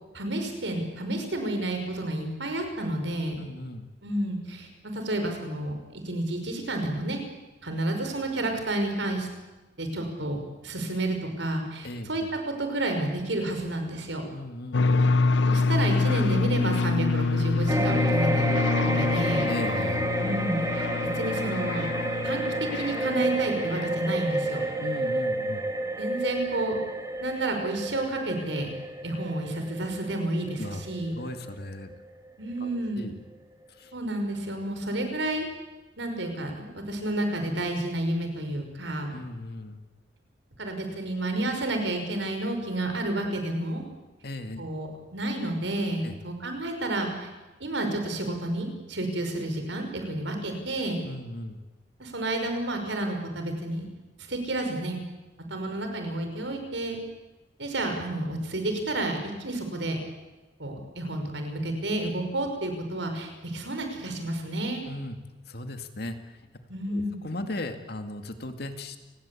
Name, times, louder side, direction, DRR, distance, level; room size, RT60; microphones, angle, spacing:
voice 1, 0.1-3.4 4.0-7.2 7.6-9.3 9.8-14.2 15.5-18.6 18.9-19.5 20.2-20.9 21.1-21.9 22.2-24.6 26.0-26.8 27.2-28.7 29.0-31.2 32.4-33.0 33.9-35.5 36.0-39.1 40.6-43.8 44.6-47.3 47.6-51.0 52.0-53.8 54.3-55.0 55.5-57.0 57.6-60.0 60.6-64.9 66.7-67.2, right 1 dB, 80° right, 5 dB, 5.6 m, -30 dB
voice 2, 3.4-3.8 11.8-12.1 14.3-15.1 19.5-20.1 24.8-25.6 30.6-30.8 31.1-31.9 32.6-32.7 33.0-33.2 33.8-33.9 39.1-39.8 44.2-44.6 46.0-46.1 51.0-51.6 64.9-65.2 65.5-66.4 66.9-69.0, left 1 dB, 55° left, 7 dB, 2.3 m, -37 dB
sound 1, 14.7-24.3, left 3 dB, 80° left, 0.8 m, -26 dB
sound 2, 17.7-32.3 32.6-32.8, right 1 dB, 20° right, 2.5 m, -30 dB
30.0 x 19.5 x 8.6 m, 1.1 s
head